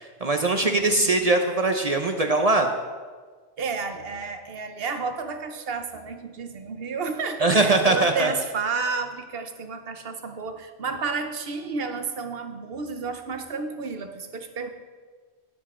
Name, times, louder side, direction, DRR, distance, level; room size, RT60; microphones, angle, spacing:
voice 1, 0.0-2.7 7.4-8.3, right 2 dB, 40° right, 4 dB, 0.7 m, -21 dB
voice 2, 0.6-1.3 3.6-14.7, right 4 dB, 60° right, 7 dB, 1.1 m, -31 dB
17.0 x 7.8 x 3.7 m, 1.5 s
omnidirectional pair, 1.1 m